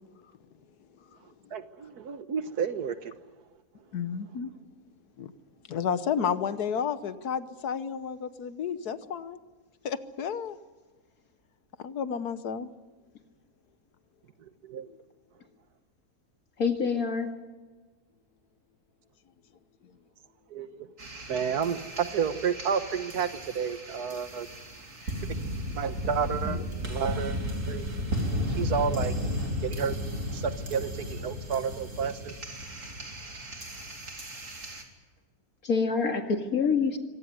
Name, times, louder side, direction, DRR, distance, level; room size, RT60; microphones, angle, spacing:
voice 1, 1.5-3.1 14.4-14.9 20.5-20.9 21.3-24.5 25.7-26.6 26.8-27.4 27.7-27.9 28.6-29.1 29.6-30.0 30.3-32.4, right 7 dB, 90° right, 11 dB, 1.7 m, -31 dB
voice 2, 3.9-4.5 5.2-5.3 5.7-9.4 9.9-10.6 11.8-12.7 25.0-25.1 26.5-26.6, left 7 dB, 85° left, 13 dB, 1.6 m, -31 dB
voice 3, 16.6-17.3 35.6-37.0, left 5 dB, 65° left, 5 dB, 2.6 m, -26 dB
sound 1, 21.0-34.8, equal, 55° right, 3.3 m, -34 dB
25.0 x 18.0 x 9.5 m, 1.3 s
omnidirectional pair, 1.6 m